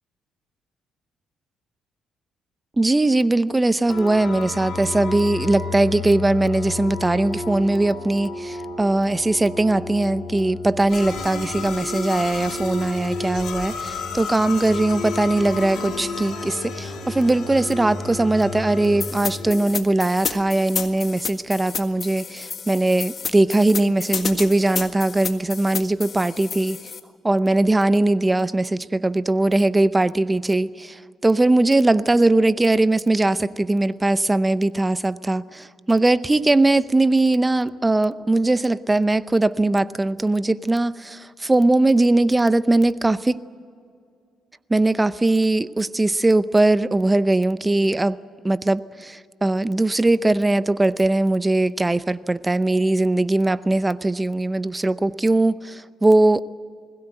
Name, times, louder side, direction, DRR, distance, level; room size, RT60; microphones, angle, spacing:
voice 1, 2.8-26.8 27.2-43.4 44.7-48.2 48.4-56.4, right 2 dB, 15° right, 15 dB, 0.7 m, -20 dB
sound 1, 3.9-19.6, left 3 dB, 70° left, 5.7 m, -31 dB
sound 2, 19.0-27.0, left 6 dB, 50° left, 1.7 m, -31 dB
21.0 x 16.5 x 9.1 m, 2.3 s
cardioid pair, 90°, 0 cm